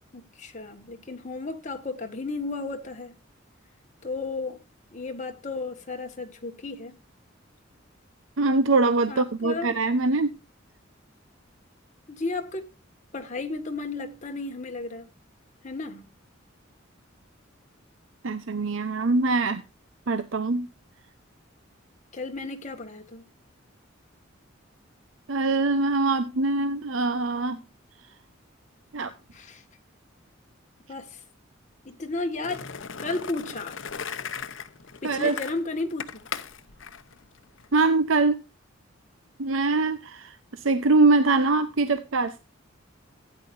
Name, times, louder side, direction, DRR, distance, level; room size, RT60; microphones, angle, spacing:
voice 1, 0.1-3.2 4.0-4.6 4.9-7.0 9.1-9.8 12.1-12.7 13.1-15.1 15.6-16.1 22.1-23.3 29.3-29.6 30.9-31.2 31.9-32.7 33.0-33.8 35.0-36.2, left 3 dB, 40° left, 1.7 m, -33 dB
voice 2, 8.4-10.3 18.2-19.6 20.1-20.7 25.3-27.6 28.9-29.1 35.0-35.4 37.7-38.4 39.4-42.4, right 3 dB, 85° right, 0.8 m, -23 dB
Skateboard, 32.4-37.9, left 6 dB, 75° left, 0.9 m, -38 dB
16.0 x 9.8 x 2.6 m
head